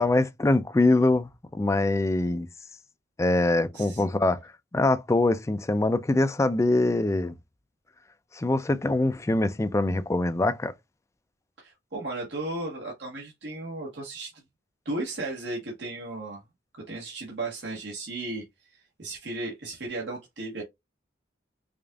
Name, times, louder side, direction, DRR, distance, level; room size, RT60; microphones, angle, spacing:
voice 1, 0.0-2.5 3.2-7.3 8.3-10.7, left 2 dB, 15° left, 0.3 m, -24 dB
voice 2, 3.7-4.0 11.6-14.3 14.8-16.4 16.9-18.4 18.7-20.6, right 2 dB, 65° right, 1.3 m, -35 dB
5.0 x 2.5 x 2.3 m
head